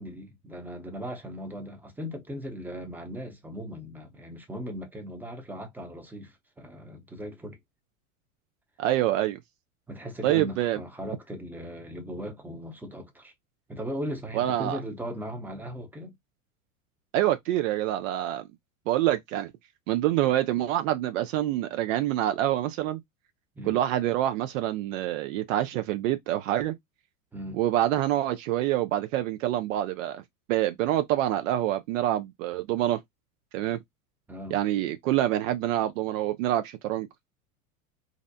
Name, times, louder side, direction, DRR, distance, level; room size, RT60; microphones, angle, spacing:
voice 1, 0.0-7.6 9.9-13.3 13.7-16.1 23.6-23.8 27.3-27.6 34.3-34.6, equal, 5° right, 0.7 m, -38 dB
voice 2, 8.8-9.4 10.2-10.8 14.3-14.8 17.1-18.5 18.9-19.5 19.9-23.0 23.7-26.8 27.5-30.2 30.5-33.0 33.5-33.8 34.5-37.1, right 13 dB, 60° right, 0.6 m, -26 dB
2.6 x 2.1 x 2.6 m
hypercardioid pair, 90°, 43 cm